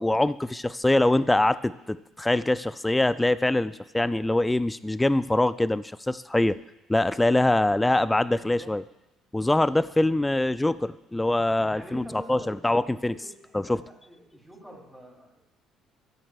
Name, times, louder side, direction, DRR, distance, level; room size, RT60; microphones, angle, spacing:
voice 1, 0.0-6.6 6.9-8.8 9.3-13.1 13.5-13.8, left 1 dB, 10° left, 16 dB, 0.3 m, -24 dB
voice 2, 8.3-8.7 11.7-12.6 12.9-15.4, equal, 5° right, -2 dB, 3.1 m, -46 dB
13.0 x 8.8 x 2.4 m, 0.91 s
hypercardioid pair, 55°, 0 cm